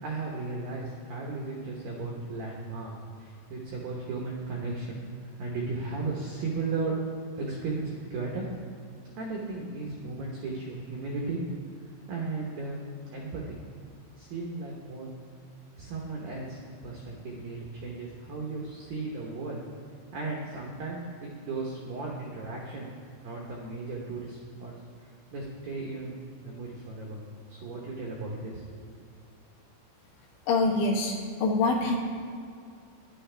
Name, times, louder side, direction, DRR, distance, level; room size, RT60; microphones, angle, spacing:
voice 1, 0.0-7.0 7.4-8.5 9.2-11.4 12.1-12.8 13.1-13.6 14.2-15.1 15.8-19.6 20.1-22.9 23.2-24.8 25.3-26.1 26.4-27.2 27.5-28.8, right 3 dB, 80° right, -2 dB, 2.1 m, -35 dB
voice 2, 30.5-32.0, left 3 dB, 70° left, -2 dB, 3.3 m, -25 dB
12.5 x 10.5 x 3.4 m, 2.4 s
omnidirectional pair, 5.8 m